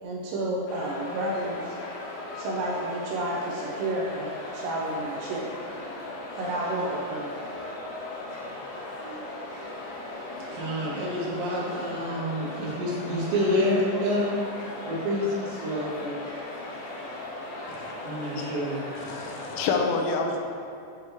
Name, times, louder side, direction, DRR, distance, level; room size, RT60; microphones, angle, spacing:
voice 1, 0.0-1.8 2.3-5.5 6.4-7.4, right 1 dB, 80° right, -4 dB, 2.8 m, -31 dB
sound 1, 0.7-19.8, left 2 dB, 70° left, 2.8 m, -38 dB
voice 2, 10.3-14.3 14.8-16.2 18.0-18.8, equal, 65° right, -8 dB, 2.1 m, -28 dB
voice 3, 19.0-20.4, left 4 dB, 90° left, 2 dB, 3.1 m, -28 dB
9.4 x 3.2 x 3.4 m, 2.5 s
omnidirectional pair, 5.5 m